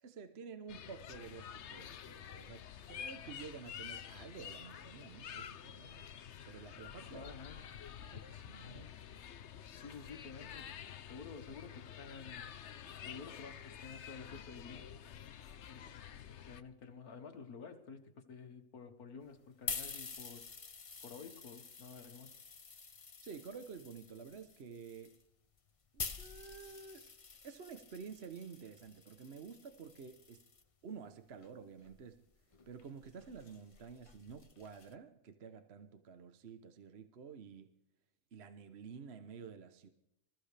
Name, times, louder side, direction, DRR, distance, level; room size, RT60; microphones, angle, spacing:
voice 1, 0.0-6.1 6.5-7.3 8.1-8.8 23.2-25.2 25.9-27.1 27.4-30.5 30.8-32.2 32.7-37.7 38.3-39.9, right 6 dB, 50° right, 1.1 m, -50 dB
sound 1, 0.7-16.6, left 9 dB, 55° left, 0.9 m, -49 dB
voice 2, 7.1-7.8 8.7-9.0 9.8-10.8 11.1-12.5 13.0-15.0 15.7-15.8 16.5-20.5 21.0-22.3, left 5 dB, 80° left, 2.0 m, -51 dB
sound 2, 19.2-30.6 31.4-34.9, left 4 dB, 30° left, 0.6 m, -48 dB
26.0 x 14.5 x 3.4 m
omnidirectional pair, 1.6 m